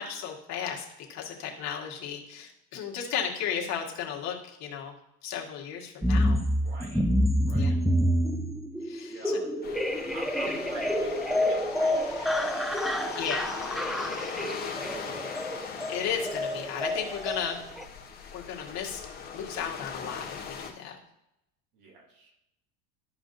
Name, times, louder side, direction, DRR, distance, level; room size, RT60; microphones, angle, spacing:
voice 1, 0.0-4.9 5.2-6.4 7.5-7.8 8.9-9.4 13.1-13.5 15.9-17.6 18.3-19.0 19.3-21.0, left 8 dB, 50° left, -1 dB, 1.8 m, -34 dB
sound 1, 6.0-17.8, equal, ahead, 0.3 m, -28 dB
voice 2, 6.5-7.1 7.4-7.8 9.1-15.2 21.7-22.3, right 2 dB, 80° right, -1 dB, 2.9 m, -48 dB
sound 2, 9.6-20.7, left 6 dB, 30° left, 1.7 m, -40 dB
13.0 x 5.0 x 2.7 m, 0.85 s
cardioid pair, 140°, 34 cm